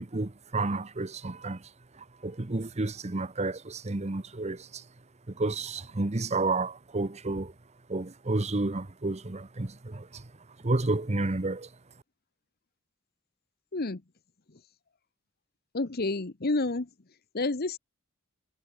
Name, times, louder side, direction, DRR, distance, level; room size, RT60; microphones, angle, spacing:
voice 1, 0.0-1.7 1.9-4.8 5.3-7.5 7.9-10.3 10.6-11.7, right 2 dB, 30° right, 0.9 m, -31 dB
voice 2, 15.7-16.9 17.3-17.8, left 2 dB, 45° left, 1.0 m, -29 dB
head